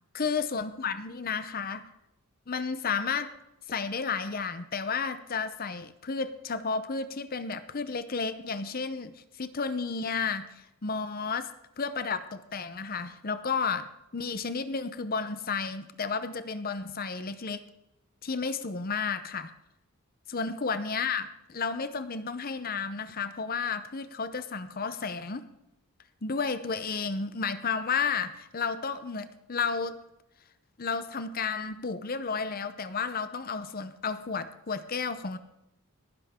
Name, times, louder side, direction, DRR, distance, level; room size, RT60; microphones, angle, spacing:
voice 1, 0.1-1.8 2.5-3.3 3.7-11.5 11.8-13.9 14.1-17.6 18.2-19.5 20.3-25.4 26.2-30.0 30.8-35.4, left 5 dB, 40° left, 12 dB, 0.8 m, -32 dB
18.5 x 10.5 x 3.7 m, 0.88 s
head